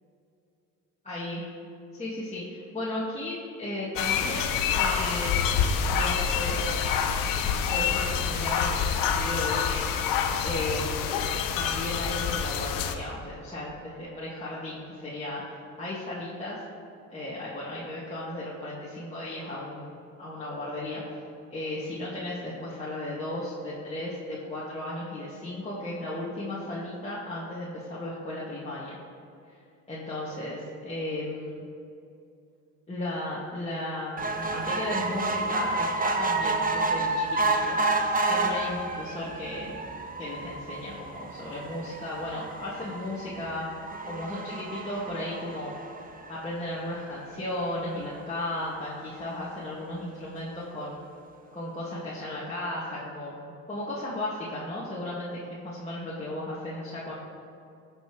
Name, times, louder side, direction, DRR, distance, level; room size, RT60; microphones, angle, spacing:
voice 1, 1.1-1.4 1.9-5.3 5.9-6.6 7.7-9.8 10.4-11.2 11.6-16.6 17.1-21.0 21.5-29.0 29.5-29.6 29.9-31.6 32.9-37.9 38.2-39.8 40.2-43.7 44.1-45.7 46.3-51.0 51.5-57.1, left 1 dB, 20° left, -9 dB, 2.1 m, -35 dB
sound 1, 4.0-12.9, left 7 dB, 85° left, 0.8 m, -27 dB
sound 2, 34.2-46.8 47.3-47.4 47.7-47.8 48.1-48.2, right 2 dB, 25° right, 0.9 m, -30 dB
17.0 x 5.6 x 3.2 m, 2.5 s
supercardioid pair, 85°, 33 cm